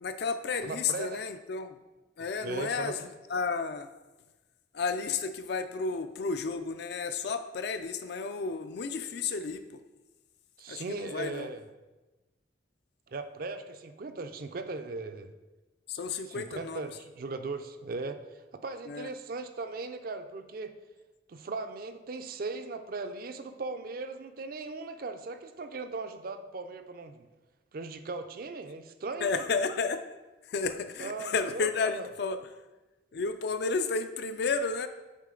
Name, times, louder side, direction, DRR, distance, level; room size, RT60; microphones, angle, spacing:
voice 1, 0.0-1.7 2.2-3.9 4.7-9.6 10.7-11.5 15.9-16.9 18.9-19.1 29.2-30.1 30.4-32.4 33.1-34.9, left 4 dB, 60° left, 9 dB, 0.4 m, -32 dB
voice 2, 0.6-1.2 2.4-2.9 10.6-11.7 13.1-15.3 16.3-20.7 21.3-27.3 27.7-29.4 31.0-31.7 32.0-32.1, right 3 dB, 50° right, 8 dB, 0.4 m, -38 dB
7.4 x 3.8 x 3.8 m, 1.1 s
head